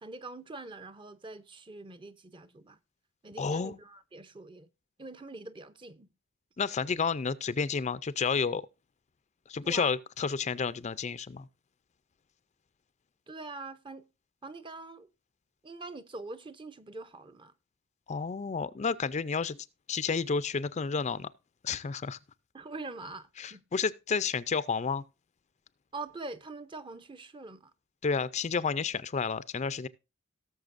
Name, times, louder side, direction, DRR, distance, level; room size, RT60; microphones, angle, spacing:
voice 1, 0.0-2.8 3.2-4.7 5.0-6.1 9.6-9.9 13.3-14.1 14.4-15.1 15.6-17.5 22.5-23.6 25.9-27.7, right 3 dB, 25° right, 0.6 m, -44 dB
voice 2, 3.4-3.8 6.6-8.6 9.5-11.5 18.1-19.6 19.9-21.3 21.6-22.2 23.4-25.0 28.0-29.9, left 5 dB, 35° left, 0.4 m, -31 dB
18.0 x 6.7 x 2.5 m
head